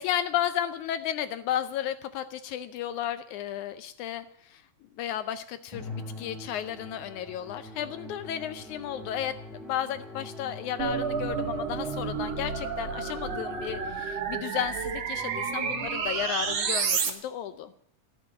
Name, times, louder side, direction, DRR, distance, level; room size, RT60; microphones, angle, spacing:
voice 1, 0.0-4.6 5.0-17.7, left 10 dB, 75° left, 12 dB, 1.9 m, -33 dB
Musical instrument, 5.7-14.2, left 1 dB, ahead, 3.4 m, -43 dB
sound 1, 10.8-17.1, right 6 dB, 55° right, 2.5 m, -30 dB
17.0 x 7.3 x 9.7 m, 0.73 s
omnidirectional pair, 3.8 m